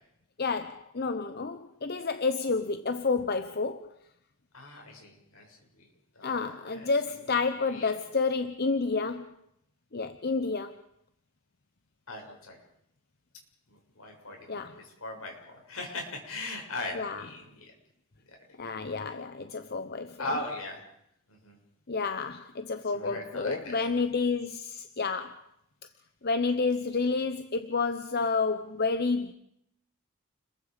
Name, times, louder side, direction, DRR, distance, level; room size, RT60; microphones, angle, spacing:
voice 1, 0.4-3.9 6.2-9.3 9.9-10.8 14.5-14.8 16.9-17.3 18.6-20.4 21.9-25.4 26.2-29.3, left 4 dB, 45° left, 0.9 m, -30 dB
voice 2, 4.5-5.9 6.2-6.9 7.7-7.9 12.1-12.6 13.7-17.7 20.2-20.8 21.3-21.6 22.9-23.8, left 2 dB, 70° left, 7.0 m, -39 dB
30.0 x 22.0 x 5.2 m
head